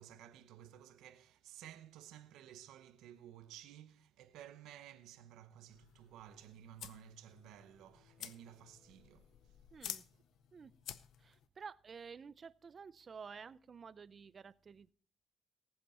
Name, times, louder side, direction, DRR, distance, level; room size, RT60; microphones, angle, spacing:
voice 1, 0.0-9.6 10.1-10.2, right 11 dB, 90° right, 0.8 m, -55 dB
sound 1, 5.7-11.5, left 10 dB, 75° left, 0.6 m, -51 dB
sound 2, 7.4-11.0, left 2 dB, 55° left, 5.0 m, -73 dB
voice 2, 9.7-10.1 10.5-10.7 11.2-14.9, right 6 dB, 40° right, 0.5 m, -52 dB
18.5 x 7.9 x 4.3 m
cardioid pair, 90°, 0 cm